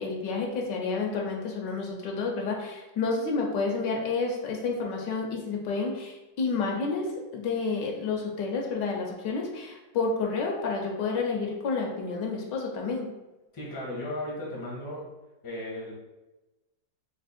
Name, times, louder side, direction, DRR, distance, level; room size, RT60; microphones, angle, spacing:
voice 1, 0.0-7.1 7.3-13.1, left 4 dB, 75° left, 1 dB, 1.3 m, -30 dB
voice 2, 13.5-15.1 15.4-15.9, left 1 dB, 20° left, -3 dB, 0.6 m, -35 dB
3.4 x 2.8 x 4.1 m, 1.1 s
omnidirectional pair, 2.0 m